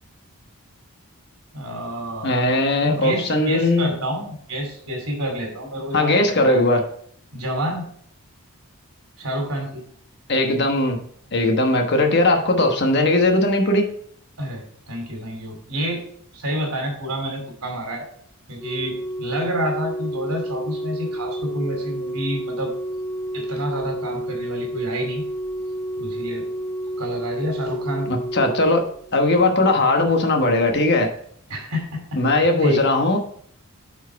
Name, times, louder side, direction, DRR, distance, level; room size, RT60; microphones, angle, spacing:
voice 1, 1.5-6.6 7.3-7.8 9.2-9.8 14.4-16.0 16.3-18.0 18.5-22.7 23.3-25.2 26.0-26.5 27.0-28.1 31.5-32.8, equal, 85° right, 1 dB, 2.6 m, -28 dB
voice 2, 2.2-3.9 5.9-6.8 10.3-11.0 11.3-13.9 28.1-28.8 29.1-31.1 32.1-33.2, left 2 dB, 50° left, 4 dB, 1.2 m, -19 dB
Organ, 18.6-29.5 30.6-30.8, right 1 dB, 5° left, 0.4 m, -30 dB
8.3 x 4.5 x 4.6 m, 0.62 s
head